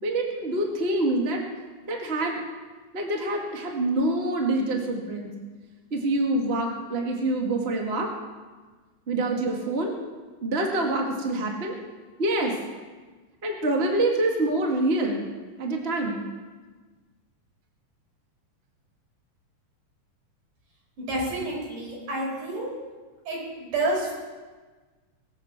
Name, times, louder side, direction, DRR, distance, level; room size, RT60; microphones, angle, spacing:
voice 1, 0.0-1.4 1.9-2.4 2.9-5.3 5.9-8.1 9.1-9.9 10.4-11.7 12.2-12.6 13.4-15.3 15.6-16.2, right 2 dB, 25° right, 1 dB, 1.6 m, -26 dB
voice 2, 21.0-22.7 23.3-24.1, right 2 dB, 75° right, -2 dB, 6.2 m, -29 dB
22.5 x 8.1 x 7.1 m, 1.3 s
omnidirectional pair, 3.7 m